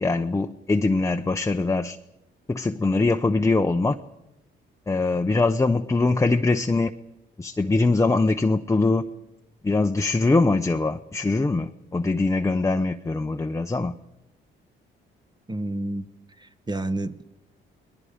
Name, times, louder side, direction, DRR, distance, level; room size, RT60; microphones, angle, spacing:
voice 1, 0.0-2.0 2.5-4.0 4.9-6.9 7.4-9.1 9.6-13.9, left 3 dB, 15° left, 0.7 m, -22 dB
voice 2, 15.5-16.0 16.7-17.2, right 1 dB, 20° right, 1.0 m, -28 dB
30.0 x 20.5 x 5.1 m
cardioid pair, 90°, 20 cm